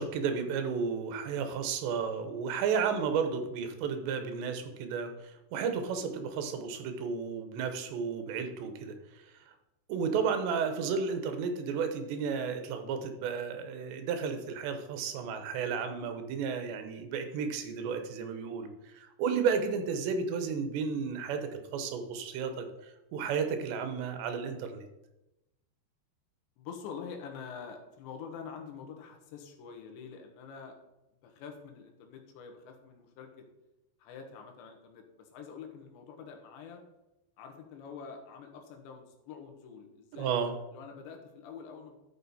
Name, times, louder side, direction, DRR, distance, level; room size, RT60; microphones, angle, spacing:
voice 1, 0.0-9.0 9.9-22.7 23.1-24.9 40.1-40.5, right 6 dB, 80° right, 7 dB, 3.2 m, -33 dB
voice 2, 26.6-30.8 31.2-33.5 34.0-36.8 37.4-40.4 40.7-42.0, left 6 dB, 85° left, 3 dB, 3.5 m, -46 dB
12.5 x 6.4 x 4.2 m, 0.95 s
omnidirectional pair, 5.0 m